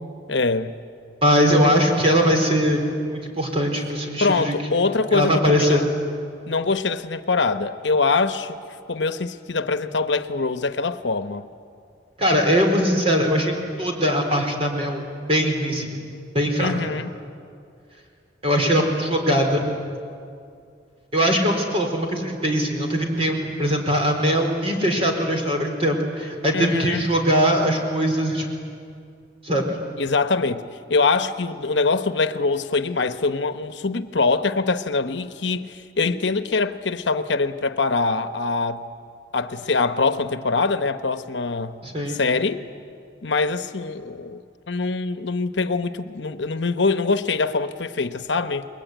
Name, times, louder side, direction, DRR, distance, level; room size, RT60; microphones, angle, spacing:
voice 1, 0.3-0.8 4.2-5.9 6.5-8.6 8.9-11.4 16.6-17.1 26.5-27.0 30.0-30.6 30.9-38.8 39.3-41.8 42.1-42.6 43.2-44.4 44.7-48.7, left 4 dB, 70° left, 1.0 m, -23 dB
voice 2, 1.2-4.5 5.1-5.8 12.2-16.0 16.3-16.9 18.4-19.7 21.1-28.5 29.4-29.7 41.8-42.2, equal, 30° right, 4.3 m, -21 dB
29.5 x 22.0 x 9.2 m
head